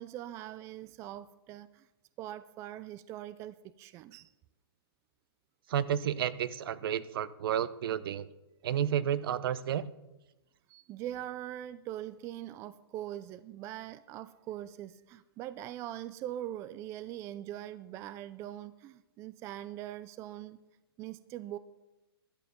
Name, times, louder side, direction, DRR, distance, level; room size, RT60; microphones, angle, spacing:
voice 1, 0.0-1.9 2.2-4.3 10.7-20.6 21.0-21.6, right 12 dB, 20° right, 15 dB, 0.4 m, -42 dB
voice 2, 5.7-8.3 8.6-9.8, right 9 dB, 60° right, 16 dB, 0.7 m, -31 dB
12.0 x 9.4 x 7.0 m, 0.99 s
hypercardioid pair, 140°, 13 cm